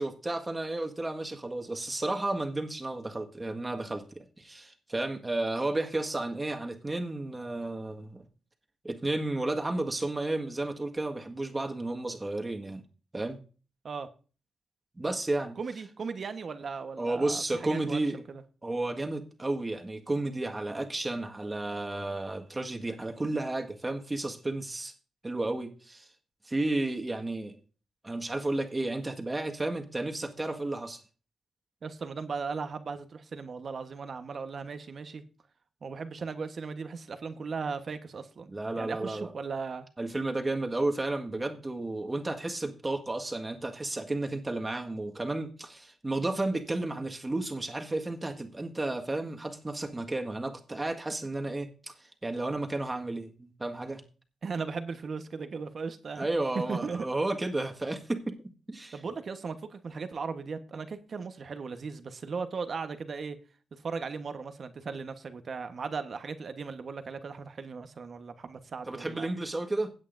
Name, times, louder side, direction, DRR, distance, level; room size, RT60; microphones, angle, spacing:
voice 1, 0.0-8.2 8.8-12.8 13.1-13.4 14.9-15.6 17.0-18.2 18.6-24.9 25.2-26.1 26.4-27.5 28.0-31.0 38.5-39.3 40.0-51.9 52.2-54.0 56.1-58.3 58.7-59.0 68.9-69.9, right 2 dB, 20° right, 1.7 m, -32 dB
voice 2, 15.6-17.4 17.7-18.4 31.8-35.2 35.8-39.9 54.4-56.3 56.5-57.1 58.9-63.4 63.8-69.3, right 5 dB, 50° right, 1.2 m, -37 dB
16.5 x 8.3 x 2.6 m
cardioid pair, 75°, 0 cm